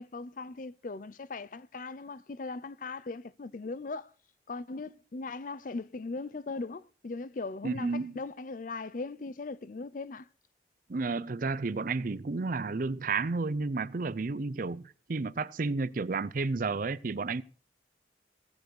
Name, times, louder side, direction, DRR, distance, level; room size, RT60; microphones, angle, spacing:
voice 1, 0.0-4.1 4.5-10.3, left 3 dB, 45° left, 0.5 m, -39 dB
voice 2, 7.6-8.2 10.9-17.4, right 3 dB, 50° right, 0.5 m, -32 dB
16.5 x 6.9 x 6.2 m
head